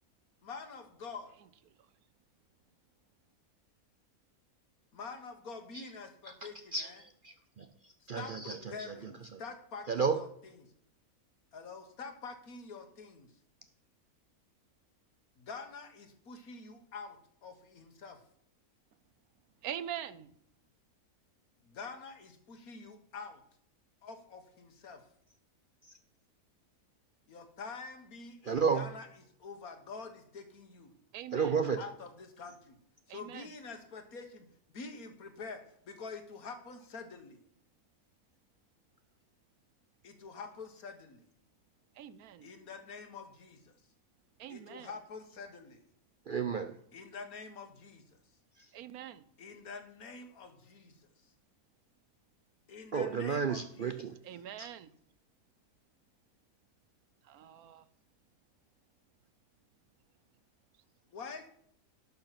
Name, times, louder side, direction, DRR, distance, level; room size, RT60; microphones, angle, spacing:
voice 1, 0.4-1.3 4.9-7.0 8.2-10.3 11.5-13.3 15.4-18.2 21.6-23.4 24.0-25.0 27.3-29.1 29.4-30.9 31.8-32.7 33.1-34.5 34.7-37.4 40.0-41.2 42.4-43.7 44.5-45.8 46.9-48.2 49.4-50.9 52.7-54.0 61.1-61.5, left 4 dB, 75° left, 7 dB, 1.9 m, -46 dB
voice 2, 6.2-9.4 9.9-10.2 28.4-28.9 31.3-31.8 46.3-46.8 48.6-48.7 52.9-54.1 54.6-54.7, right 5 dB, 55° right, 9 dB, 0.6 m, -33 dB
voice 3, 19.6-20.3 31.1-31.6 33.1-33.5 41.9-42.5 44.4-44.9 48.7-49.2 54.2-54.9 57.2-57.8, right 10 dB, 80° right, 16 dB, 1.2 m, -43 dB
11.5 x 6.8 x 5.8 m, 0.68 s
omnidirectional pair, 1.5 m